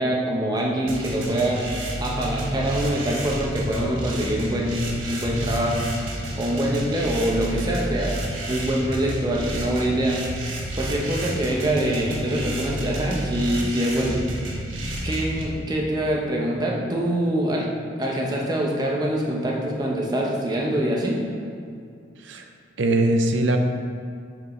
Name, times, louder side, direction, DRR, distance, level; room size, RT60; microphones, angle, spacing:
voice 1, 0.0-1.7 2.0-5.9 6.3-8.2 8.5-10.2 10.8-14.2 15.0-17.7 18.0-21.2, right 1 dB, 20° right, -2 dB, 0.8 m, -24 dB
sound 1, 0.9-15.4, right 1 dB, 90° right, 1.1 m, -30 dB
voice 2, 22.8-23.6, right 1 dB, 70° right, 5 dB, 0.6 m, -21 dB
7.1 x 5.3 x 3.2 m, 2.4 s
head